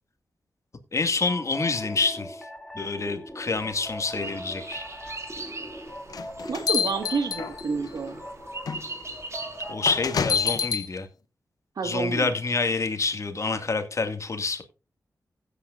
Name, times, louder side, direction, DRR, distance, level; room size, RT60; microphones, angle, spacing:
voice 1, 0.9-2.5 2.7-4.8 9.7-11.1 11.8-14.6, left 4 dB, 50° left, 1.9 m, -27 dB
sound 1, 1.3-10.5, equal, 5° left, 2.9 m, -40 dB
sound 2, 3.5-9.7, right 2 dB, 45° right, 2.8 m, -41 dB
sound 3, 6.1-7.9 8.7-8.8 9.8-10.9, left 7 dB, 80° left, 0.8 m, -27 dB
voice 2, 6.5-8.2 11.8-12.3, right 4 dB, 80° right, 1.6 m, -29 dB
16.5 x 8.7 x 2.5 m
cardioid pair, 60°, 6 cm